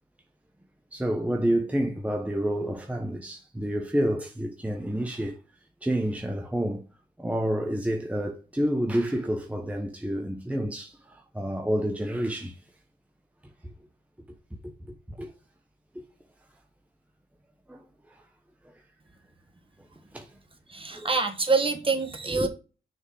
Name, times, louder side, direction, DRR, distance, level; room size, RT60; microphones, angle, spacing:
voice 1, 0.9-5.4 5.8-6.8 7.2-12.6 13.6-13.7 14.6-14.7 15.1-15.3 15.9-16.0 17.7-17.8 18.1-18.2 20.1-20.3 20.9-21.1 22.3-22.5, right 1 dB, 10° right, 1.0 m, -29 dB
voice 2, 20.7-22.5, right 4 dB, 30° right, 1.7 m, -26 dB
6.6 x 3.7 x 6.1 m
cardioid pair, 60°, 18 cm